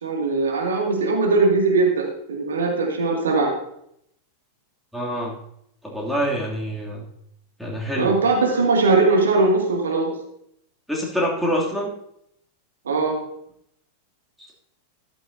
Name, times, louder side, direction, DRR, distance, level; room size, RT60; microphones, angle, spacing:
voice 1, 0.0-3.5 7.9-10.1 12.9-13.2, right 3 dB, 65° right, 0 dB, 2.2 m, -20 dB
voice 2, 4.9-5.4 5.8-7.1 7.6-8.2 10.9-11.9 14.4-14.5, equal, ahead, -4 dB, 2.7 m, -26 dB
14.0 x 12.5 x 2.7 m, 0.73 s
figure-of-eight pair, 90°, 0 cm